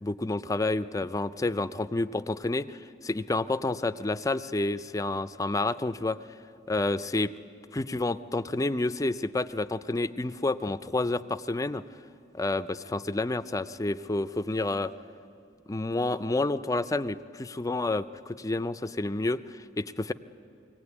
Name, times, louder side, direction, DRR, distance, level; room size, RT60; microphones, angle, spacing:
voice 1, 0.0-6.2 6.7-7.3 7.7-11.8 12.3-14.9 15.7-20.1, left 2 dB, 20° left, 12 dB, 0.5 m, -29 dB
22.5 x 17.5 x 9.8 m, 2.6 s
head